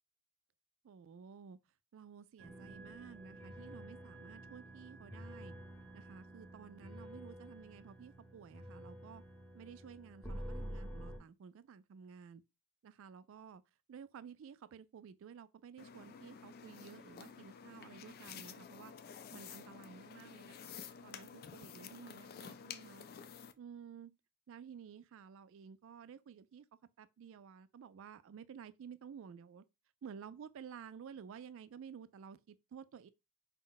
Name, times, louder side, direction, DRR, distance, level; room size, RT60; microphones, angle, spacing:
voice 1, 0.8-1.6 1.9-5.5 5.9-9.2 9.5-12.4 12.8-13.6 13.9-18.9 19.3-20.7 21.0-23.1 23.6-24.1 24.5-26.7 27.0-29.6 30.0-33.1, right 7 dB, 65° right, 0.3 m, -53 dB
sound 1, 2.4-11.2, right 1 dB, 5° left, 0.8 m, -49 dB
sound 2, 15.8-23.5, left 7 dB, 45° left, 0.3 m, -51 dB
4.3 x 2.1 x 3.8 m
head